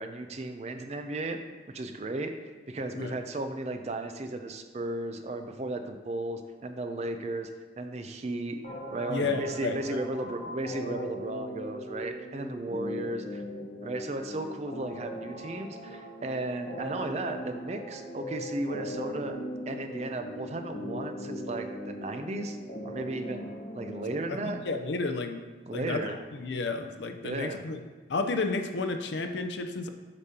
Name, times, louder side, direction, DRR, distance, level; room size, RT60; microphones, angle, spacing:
voice 1, 0.0-1.4 1.7-7.5 7.8-8.6 8.9-13.4 13.8-19.4 19.7-22.6 22.8-24.6 25.7-26.2 27.2-27.6, right 2 dB, 35° right, 7 dB, 0.4 m, -35 dB
sound 1, 8.6-24.6, equal, 40° left, 1.1 m, -39 dB
voice 2, 9.1-10.0 24.3-24.4 24.6-25.4 25.7-27.8 28.1-29.9, left 3 dB, 70° left, 6 dB, 0.5 m, -32 dB
8.1 x 5.2 x 2.8 m, 1.4 s
head